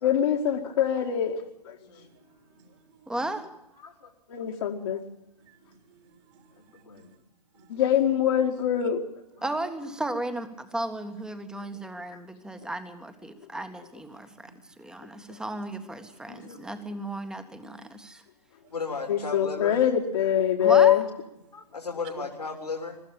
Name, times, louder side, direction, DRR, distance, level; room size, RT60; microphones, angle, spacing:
voice 1, 0.0-1.4 1.7-1.8 4.3-5.0 7.7-9.0 16.3-16.6 19.1-21.0, left 10 dB, 50° left, 0 dB, 2.2 m, -23 dB
voice 2, 2.0-3.1 5.5-7.0 7.6-7.8 14.5-14.6 17.8-17.9 18.6-18.7, right 5 dB, 45° right, 5 dB, 3.4 m, -60 dB
voice 3, 3.1-3.5 9.4-18.2 20.6-21.0, right 1 dB, 5° right, 9 dB, 1.7 m, -34 dB
voice 4, 3.8-4.4 6.6-7.1 7.6-7.7 9.4-9.5 18.7-19.8 21.5-23.0, left 4 dB, 75° left, 3 dB, 3.5 m, -36 dB
23.0 x 14.0 x 8.8 m, 0.89 s
figure-of-eight pair, 115°, 20 cm